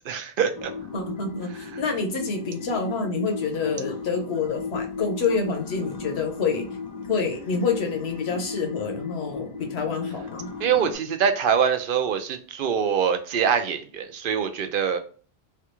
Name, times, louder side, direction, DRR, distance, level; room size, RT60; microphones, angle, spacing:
voice 1, 0.1-0.7 10.6-15.0, right 7 dB, 65° right, 8 dB, 0.7 m, -24 dB
sound 1, 0.6-10.9, left 5 dB, 45° left, 0.7 m, -35 dB
voice 2, 0.9-6.7 7.1-10.5, left 4 dB, 80° left, 4 dB, 1.1 m, -27 dB
3.3 x 2.3 x 2.9 m, 0.40 s
omnidirectional pair, 1.1 m